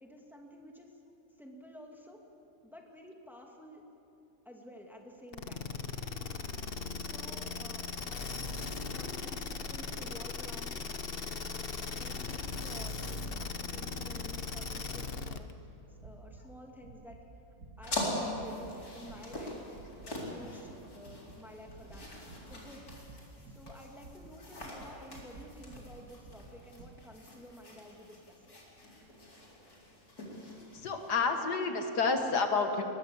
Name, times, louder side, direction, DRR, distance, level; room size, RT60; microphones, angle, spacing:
voice 1, 0.0-0.9 1.4-2.2 2.6-3.8 4.4-5.7 6.9-8.6 8.9-10.8 11.9-15.5 16.0-17.2 17.8-19.6 20.0-22.1 22.5-22.9 23.5-28.4, equal, ahead, 1 dB, 2.3 m, -51 dB
sound 1, 5.3-15.5, left 4 dB, 40° left, 1.0 m, -38 dB
sound 2, 9.4-10.0 10.4-10.9 11.4-11.9 12.3-12.9 13.3-13.9 14.3-14.8 15.1-15.6 16.0-16.5 16.8-17.2 17.6-18.0 18.3-18.7 19.0-19.5 19.7-26.9, right 2 dB, 65° right, 2.8 m, -52 dB
sound 3, 17.8-31.3, left 1 dB, 65° left, 4.6 m, -43 dB
voice 2, 30.7-32.8, left 4 dB, 80° left, 5 dB, 2.2 m, -29 dB
22.5 x 20.5 x 7.2 m, 2.9 s
omnidirectional pair, 1.7 m